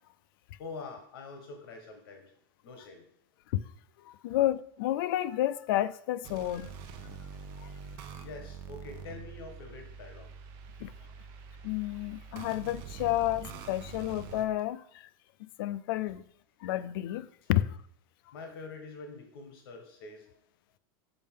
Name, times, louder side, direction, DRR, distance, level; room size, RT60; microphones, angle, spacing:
voice 1, 0.6-2.3 2.6-3.1 8.2-10.3 11.0-11.1 18.3-20.3, left 3 dB, 90° left, 1.2 m, -45 dB
voice 2, 4.0-6.7 7.6-7.7 10.8-10.9 11.6-15.1 15.4-16.2 16.6-17.8, left 14 dB, 70° left, 0.4 m, -31 dB
sound 1, 6.2-14.4, right 6 dB, 45° right, 0.8 m, -45 dB
6.9 x 5.2 x 3.6 m
supercardioid pair, 160°, 12 cm